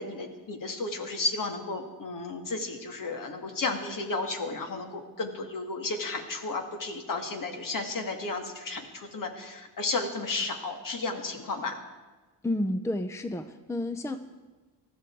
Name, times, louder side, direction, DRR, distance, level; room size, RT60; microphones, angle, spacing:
voice 1, 0.0-11.8, left 3 dB, 50° left, 5 dB, 2.3 m, -33 dB
voice 2, 12.4-14.2, left 1 dB, 5° left, 10 dB, 0.7 m, -30 dB
19.0 x 14.5 x 4.7 m, 1.3 s
cardioid pair, 90°, 40 cm